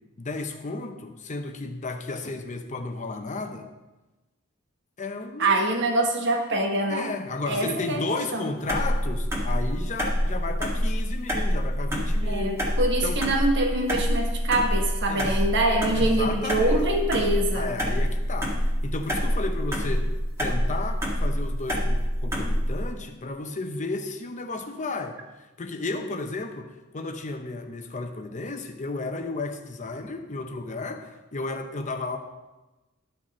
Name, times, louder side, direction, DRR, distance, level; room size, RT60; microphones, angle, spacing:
voice 1, 0.2-3.7 5.0-5.6 6.9-12.7 13.0-13.2 15.1-15.4 15.9-16.9 17.5-20.1 20.4-25.2 25.6-32.2, left 3 dB, 35° left, 6 dB, 0.7 m, -33 dB
voice 2, 5.4-7.1 7.5-8.4 12.2-17.7, right 2 dB, 60° right, 2 dB, 1.4 m, -25 dB
sound 1, 8.7-22.8, equal, 15° right, 1.7 m, -26 dB
11.5 x 6.4 x 4.3 m, 1.1 s
head